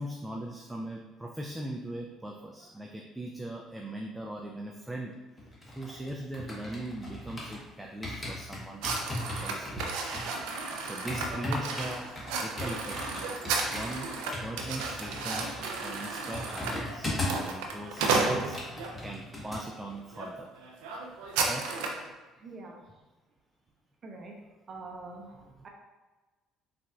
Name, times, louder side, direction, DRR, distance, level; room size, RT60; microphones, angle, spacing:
voice 1, 0.0-5.2 5.6-8.9 9.4-10.0 10.8-14.1 14.4-15.5 15.8-17.1 17.4-18.6 19.0-20.5 21.5-21.8 25.3-25.6, right 1 dB, 5° right, -1 dB, 0.4 m, -40 dB
sound 1, 5.4-7.7 8.0-17.5 17.8-19.6 19.9-20.2, left 1 dB, 25° left, 1.1 m, -38 dB
sound 2, 8.8-18.9 19.6-19.8 20.1-20.3 20.6-22.1, right 4 dB, 85° right, 0.4 m, -33 dB
voice 2, 22.4-22.8 24.0-24.3 24.7-25.7, right 3 dB, 45° right, 0 dB, 0.6 m, -44 dB
4.1 x 2.5 x 2.3 m, 1.2 s
supercardioid pair, 75°, 0 cm